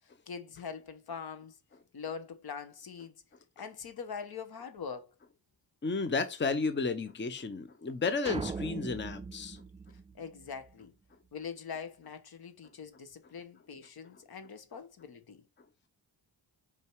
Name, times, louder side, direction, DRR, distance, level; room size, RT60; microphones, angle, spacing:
voice 1, 0.3-1.6 1.9-3.2 3.6-5.1 10.1-10.9 11.3-15.4, left 6 dB, 60° left, 1.3 m, -43 dB
voice 2, 5.8-9.6, left 4 dB, 25° left, 0.8 m, -32 dB
sound 1, 8.2-10.7, right 4 dB, 15° right, 0.3 m, -40 dB
5.4 x 4.8 x 4.6 m
cardioid pair, 65°, 42 cm